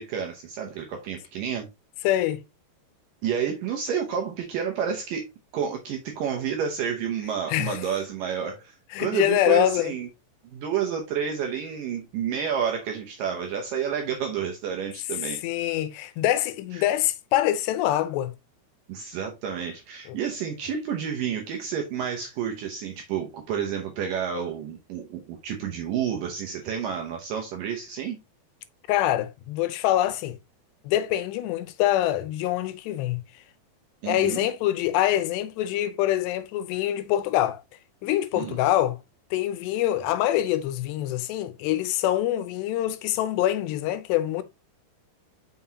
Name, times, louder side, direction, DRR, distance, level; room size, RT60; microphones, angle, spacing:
voice 1, 0.0-1.7 3.2-5.3 5.5-10.1 10.5-15.4 16.7-16.9 18.9-28.2 34.0-34.5 38.3-38.6, right 8 dB, 75° right, 2.0 m, -30 dB
voice 2, 2.0-2.4 7.5-7.9 8.9-9.9 15.4-18.3 28.9-30.4 30.8-33.2 34.0-37.6 38.0-39.0 39.3-44.4, left 13 dB, 85° left, 2.7 m, -25 dB
6.0 x 5.6 x 2.8 m
omnidirectional pair, 4.9 m